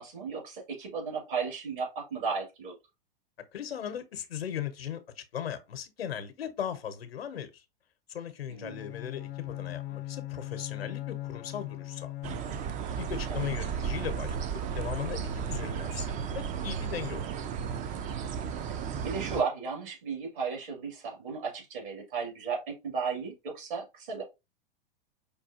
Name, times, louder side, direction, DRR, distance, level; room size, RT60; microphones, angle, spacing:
voice 1, 0.0-2.7 8.5-8.8 13.3-13.5 19.0-24.2, right 5 dB, 60° right, 2.5 m, -34 dB
voice 2, 3.5-7.5 8.1-12.1 13.0-17.2, left 9 dB, 90° left, 0.8 m, -38 dB
Bowed string instrument, 8.6-12.8, left 15 dB, 50° left, 0.5 m, -39 dB
sound 1, 12.2-19.4, right 7 dB, 25° right, 0.4 m, -34 dB
5.2 x 2.3 x 2.7 m
hypercardioid pair, 105°, 29 cm